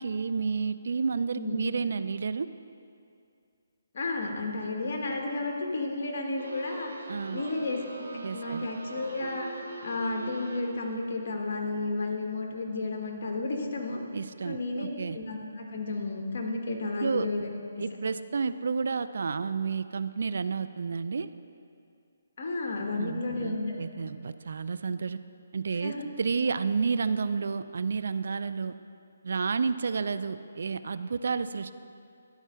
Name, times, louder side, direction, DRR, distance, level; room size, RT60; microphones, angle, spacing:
voice 1, 0.0-2.5 7.1-7.4 8.2-8.7 14.1-15.2 17.0-17.3 17.8-21.3 22.9-25.2 25.5-28.7 29.2-31.7, right 5 dB, 65° right, 12 dB, 0.3 m, -31 dB
voice 2, 3.9-6.9 7.3-7.8 8.3-9.5 9.8-14.0 14.4-14.9 15.1-17.5 17.7-17.8 22.4-23.8 25.8-26.0, left 2 dB, 55° left, 1 dB, 1.3 m, -32 dB
sound 1, 6.4-11.0, right 2 dB, 85° right, 1.1 m, -42 dB
12.0 x 4.6 x 5.5 m, 2.5 s
hypercardioid pair, 160°, 0 cm